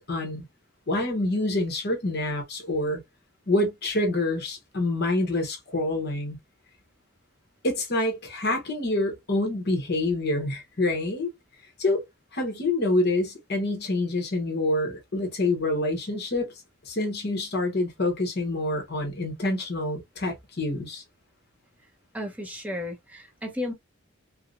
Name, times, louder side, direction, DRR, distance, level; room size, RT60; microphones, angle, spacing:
voice 1, 0.1-0.4 0.9-3.0 3.5-6.4 7.6-11.3 11.8-12.0 12.3-16.5 16.8-21.0, left 2 dB, 50° left, 1.0 m, -27 dB
voice 2, 22.1-23.7, left 1 dB, 5° right, 0.7 m, -33 dB
4.6 x 2.1 x 2.4 m
head